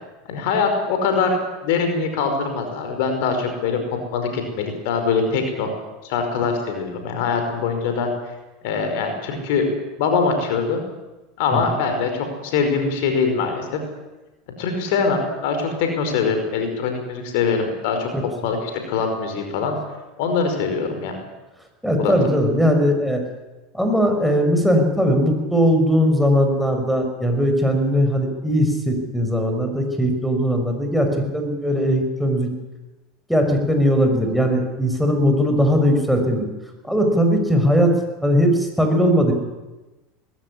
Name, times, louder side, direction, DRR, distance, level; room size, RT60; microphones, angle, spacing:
voice 1, 0.3-1.4 1.6-5.7 6.0-8.1 8.6-9.7 10.0-10.8 11.4-13.8 14.6-18.1 18.4-19.8 20.2-21.2 22.0-22.1, left 5 dB, 65° left, 6 dB, 5.2 m, -23 dB
voice 2, 21.8-23.2 23.7-32.5 33.3-36.5 36.8-37.9 38.2-39.3, equal, ahead, 4 dB, 5.8 m, -19 dB
20.0 x 16.5 x 9.9 m, 1.1 s
hypercardioid pair, 85°, 0 cm